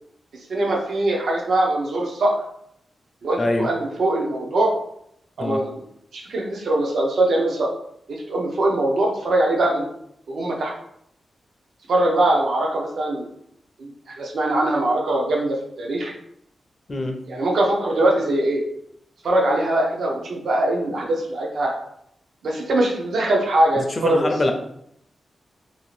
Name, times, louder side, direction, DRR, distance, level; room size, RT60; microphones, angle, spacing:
voice 1, 0.5-2.4 3.2-4.7 5.4-5.8 6.1-7.7 8.1-9.9 10.3-10.7 11.9-13.3 13.8-13.9 14.2-16.1 17.3-18.6 19.2-21.7 22.4-24.3, right 1 dB, 70° right, -1 dB, 0.6 m, -22 dB
voice 2, 3.4-3.7 5.4-5.6 16.9-17.2 23.8-24.5, left 2 dB, 30° left, 4 dB, 0.4 m, -24 dB
2.7 x 2.4 x 3.1 m, 0.72 s
wide cardioid pair, 135°, 0 cm